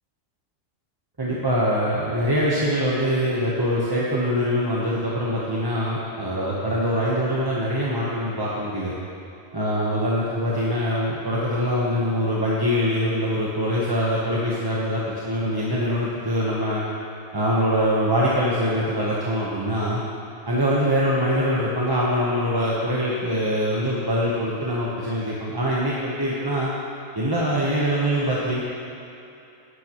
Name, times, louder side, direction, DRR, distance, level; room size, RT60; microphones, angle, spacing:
voice 1, 1.2-8.9 9.5-16.8 17.3-20.0 20.5-26.7 27.1-28.6, equal, 20° right, -6 dB, 0.9 m, -23 dB
12.0 x 10.5 x 3.0 m, 2.8 s
omnidirectional pair, 1.4 m